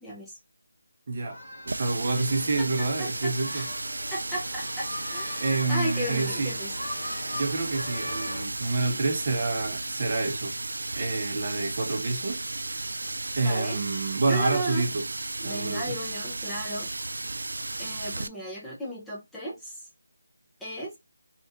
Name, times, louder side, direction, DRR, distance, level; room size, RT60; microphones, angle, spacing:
voice 1, 0.0-0.4 2.1-2.2 2.6-3.7 4.1-6.8 13.4-13.8 14.2-14.8 15.4-16.9 17.8-19.9 20.6-21.0, right 1 dB, 5° left, 0.7 m, -35 dB
voice 2, 1.1-1.4 1.7-3.7 5.4-6.5 7.3-10.6 10.9-12.4 13.4-15.0 15.4-16.0, right 3 dB, 30° right, 0.8 m, -28 dB
sound 1, 1.2-8.5, left 1 dB, 25° left, 2.0 m, -40 dB
Water tap faucet, 1.7-18.3, right 2 dB, 80° right, 0.3 m, -34 dB
3.4 x 2.5 x 3.8 m
figure-of-eight pair, 175°, 0 cm